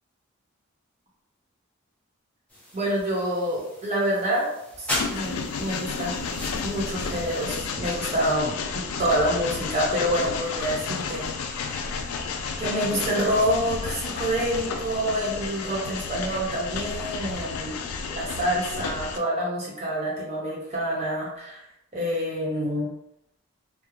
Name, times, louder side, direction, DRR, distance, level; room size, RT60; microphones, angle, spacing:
sound 1, 2.5-7.6, left 1 dB, 5° left, 0.6 m, -37 dB
voice 1, 2.7-4.5 4.8-6.2 6.6-12.1 12.6-17.8 18.1-21.6 21.9-22.9, equal, 30° right, -5 dB, 0.8 m, -27 dB
Train, 4.9-19.2, left 5 dB, 85° left, 0.3 m, -32 dB
2.4 x 2.0 x 3.0 m, 0.79 s
head